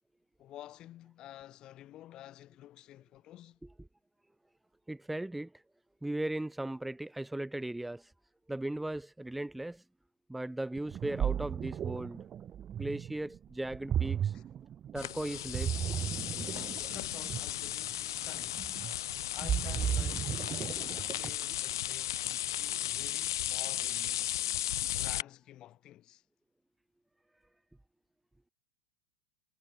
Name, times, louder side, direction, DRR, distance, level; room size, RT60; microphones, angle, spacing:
voice 1, 0.4-3.6 14.3-14.4 16.9-18.7 19.3-24.4 25.0-26.2, left 13 dB, 35° left, 3.4 m, -50 dB
voice 2, 4.9-5.5 6.0-8.1 8.5-9.8 10.3-12.2 12.8-14.3 14.9-15.9 16.5-16.8, right 1 dB, 5° right, 1.0 m, -37 dB
Ocean, 10.8-21.5, right 9 dB, 25° right, 1.2 m, -35 dB
sound 1, 15.0-25.2, left 13 dB, 80° left, 0.6 m, -35 dB
supercardioid pair, 135°, 2 cm